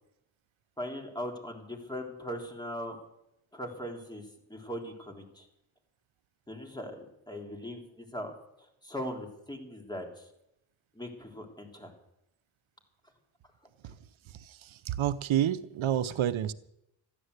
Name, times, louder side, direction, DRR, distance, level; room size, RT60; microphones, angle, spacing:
voice 1, 0.8-3.0 3.5-4.2 4.5-5.5 6.5-8.3 8.8-10.3 11.0-11.9, equal, 10° left, 3.6 m, -39 dB
voice 2, 14.9-16.5, right 11 dB, 90° right, 0.7 m, -28 dB
14.0 x 11.0 x 8.1 m
cardioid pair, 80°, 46 cm